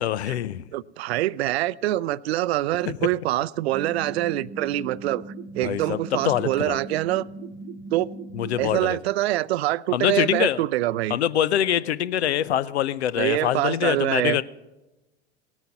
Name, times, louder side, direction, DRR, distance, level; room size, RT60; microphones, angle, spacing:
voice 1, 0.0-0.6 2.9-3.0 5.6-6.8 8.3-9.0 9.9-10.6 11.1-14.4, left 11 dB, 80° left, 18 dB, 0.6 m, -24 dB
voice 2, 0.7-5.2 5.5-7.3 7.9-8.1 8.6-11.2 13.2-14.4, right 15 dB, 70° right, 20 dB, 0.5 m, -25 dB
sound 1, 3.7-8.8, right 3 dB, 35° right, 1.0 m, -38 dB
18.0 x 9.1 x 5.7 m, 1.1 s
hypercardioid pair, 90°, 32 cm